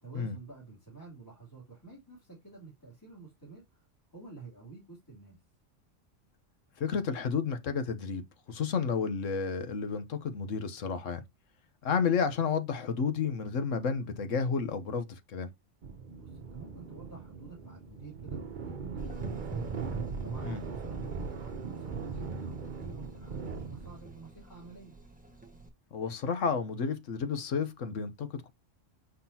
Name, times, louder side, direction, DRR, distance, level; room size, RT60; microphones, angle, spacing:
voice 1, 0.0-5.4 16.1-19.8 20.2-25.0, right 4 dB, 15° left, 3.0 m, -50 dB
voice 2, 6.8-8.2 8.5-11.2 11.8-15.5 20.4-20.6 25.9-28.5, left 5 dB, 90° left, 1.4 m, -31 dB
sound 1, 15.8-24.2, right 5 dB, 45° right, 0.9 m, -39 dB
Gurgling / Engine, 19.0-25.7, right 3 dB, 5° right, 1.4 m, -45 dB
6.4 x 5.8 x 2.8 m
omnidirectional pair, 1.3 m